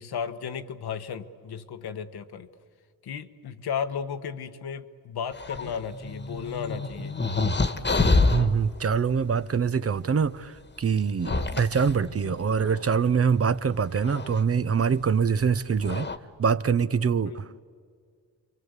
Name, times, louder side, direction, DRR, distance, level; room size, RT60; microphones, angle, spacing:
voice 1, 0.0-2.5 3.0-7.2 17.2-17.6, left 7 dB, 75° left, 1.4 m, -34 dB
sound 1, 5.4-8.5 9.9-10.0 11.0-12.9 14.0-14.4 15.4-15.5 15.8-16.2, left 3 dB, 25° left, 1.5 m, -27 dB
voice 2, 8.3-16.1 16.4-17.5, right 6 dB, 35° right, 0.8 m, -24 dB
30.0 x 23.5 x 8.2 m
cardioid pair, 80°, 39 cm